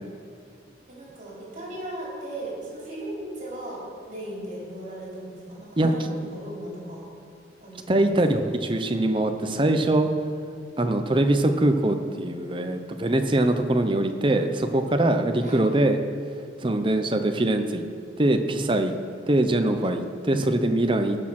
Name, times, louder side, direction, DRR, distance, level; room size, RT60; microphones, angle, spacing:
voice 1, 0.9-7.0 7.6-8.1 15.4-15.6, right 1 dB, 40° right, -5 dB, 3.7 m, -37 dB
voice 2, 7.9-10.1 10.8-16.0 16.6-17.8 18.2-18.9 19.3-21.2, right 1 dB, 25° right, 7 dB, 0.7 m, -22 dB
18.0 x 6.5 x 5.9 m, 2.3 s
head